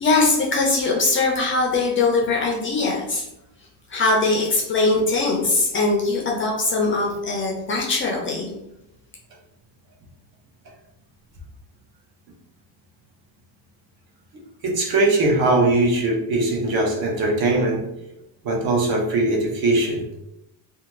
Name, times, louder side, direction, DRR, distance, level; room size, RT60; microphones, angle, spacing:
voice 1, 0.0-3.2 3.9-8.5, left 3 dB, 30° left, -2 dB, 0.4 m, -21 dB
voice 2, 14.6-17.8 18.4-20.0, right 2 dB, 55° right, 0 dB, 0.8 m, -20 dB
2.5 x 2.3 x 2.9 m, 0.85 s
cardioid pair, 155°, 43 cm